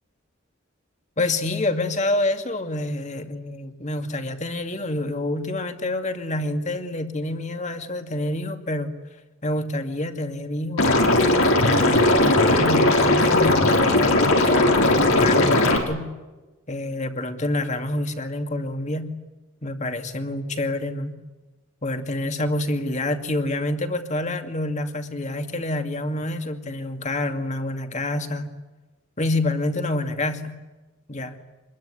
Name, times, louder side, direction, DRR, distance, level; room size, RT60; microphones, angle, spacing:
voice 1, 1.2-8.9 9.4-10.9 11.7-16.1 16.7-19.1 19.6-21.2 21.8-28.5 29.2-30.6 31.1-31.4, left 2 dB, 35° left, 6 dB, 2.4 m, -27 dB
Liquid, 10.8-15.8, left 2 dB, 90° left, 5.6 m, -18 dB
26.5 x 22.0 x 9.9 m, 1.1 s
head